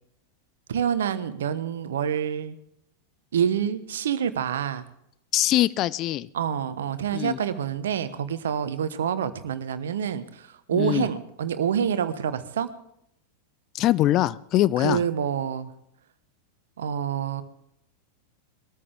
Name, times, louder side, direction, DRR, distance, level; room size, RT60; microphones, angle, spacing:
voice 1, 0.7-2.5 3.3-4.8 6.3-12.7 14.8-15.7 16.8-17.4, right 8 dB, 60° right, 13 dB, 1.1 m, -27 dB
voice 2, 5.3-6.3 7.1-7.4 10.7-11.1 13.7-15.0, left 14 dB, 35° left, 18 dB, 0.5 m, -23 dB
22.0 x 13.5 x 3.5 m, 0.75 s
figure-of-eight pair, 90°, 0 cm